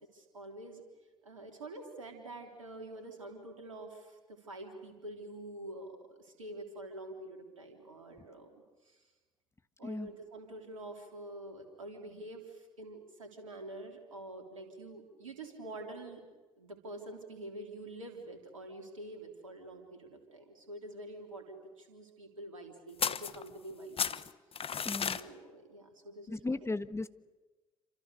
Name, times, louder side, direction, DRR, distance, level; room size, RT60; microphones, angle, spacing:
voice 1, 0.1-0.8 1.2-9.0 9.8-16.2 16.6-24.2 24.5-24.6 25.0-26.7, right 1 dB, 85° right, 4 dB, 3.5 m, -47 dB
sound 1, 23.0-23.7 24.0-25.2, left 7 dB, 35° left, 1.2 m, -33 dB
voice 2, 24.8-25.2 26.3-27.1, left 3 dB, 15° left, 13 dB, 1.4 m, -36 dB
28.0 x 26.5 x 6.8 m, 1.2 s
figure-of-eight pair, 50°, 16 cm